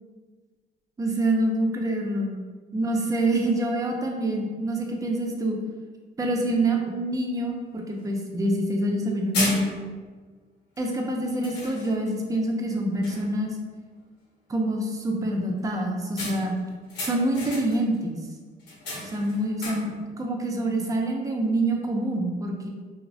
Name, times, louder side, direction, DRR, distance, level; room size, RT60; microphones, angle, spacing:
voice 1, 1.0-2.4 2.7-5.6 6.2-9.7 10.8-13.6 14.5-16.5 17.0-18.2 19.0-22.7, right 1 dB, 20° right, 1 dB, 0.4 m, -26 dB
sound 1, 7.5-7.6 8.0-8.1 8.8-9.0 9.3-10.1 10.8-11.0 11.4-12.2 12.6-12.8 13.0-13.5 16.2-18.0 18.6-20.1, left 2 dB, 80° left, 0.9 m, -34 dB
3.0 x 2.0 x 2.6 m, 1.4 s
cardioid pair, 110°, 17 cm